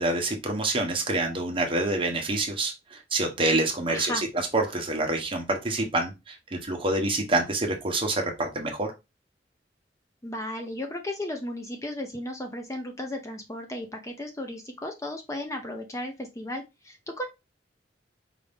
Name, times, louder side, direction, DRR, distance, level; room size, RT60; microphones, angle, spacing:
voice 1, 0.0-4.1 4.5-8.9, right 2 dB, 30° right, 2 dB, 1.0 m, -27 dB
voice 2, 3.9-4.2 10.2-17.3, left 1 dB, 15° left, 4 dB, 0.6 m, -35 dB
4.8 x 2.7 x 3.5 m, 0.24 s
head